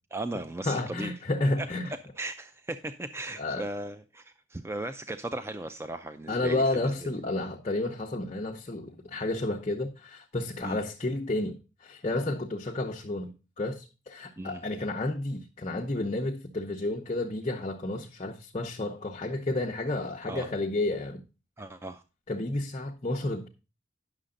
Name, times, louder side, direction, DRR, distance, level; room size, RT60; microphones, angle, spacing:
voice 1, 0.1-1.1 1.6-1.7 2.2-6.9 10.6-10.8 14.4-14.6 20.3-20.5 21.6-22.0, right 2 dB, 15° right, 0.4 m, -37 dB
voice 2, 0.6-1.9 3.4-3.6 6.3-21.2 22.3-23.5, left 2 dB, 35° left, 0.8 m, -31 dB
9.9 x 6.6 x 3.7 m
head